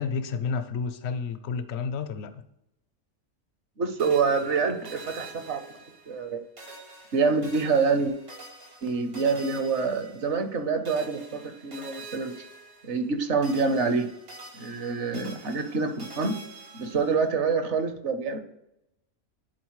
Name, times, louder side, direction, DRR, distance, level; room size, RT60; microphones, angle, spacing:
voice 1, 0.0-2.5, left 5 dB, 60° left, 0.8 m, -31 dB
voice 2, 3.8-5.6 6.1-6.4 7.1-8.1 8.8-12.3 12.8-14.1 14.6-16.4 16.7-18.4, right 4 dB, 55° right, 1.1 m, -26 dB
sound 1, 4.0-6.3 6.6-10.6 10.8-13.2 13.4-17.3, right 3 dB, 85° right, 3.0 m, -46 dB
10.5 x 4.1 x 3.1 m
omnidirectional pair, 1.5 m